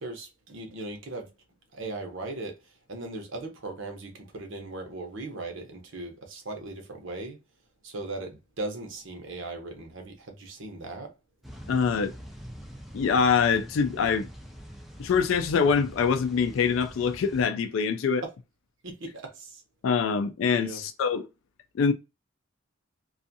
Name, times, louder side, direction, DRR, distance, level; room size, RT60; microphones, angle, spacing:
voice 1, 0.0-1.3 1.7-7.4 7.8-11.1 18.2-18.3 18.8-19.6 20.5-20.8, right 2 dB, 70° right, 0.8 m, -38 dB
sound 1, 11.4-17.4, equal, ahead, 0.3 m, -44 dB
voice 2, 11.7-12.1 12.9-14.3 15.0-18.2 19.8-21.3 21.8-21.9, left 6 dB, 80° left, 0.3 m, -24 dB
2.5 x 2.4 x 2.6 m
head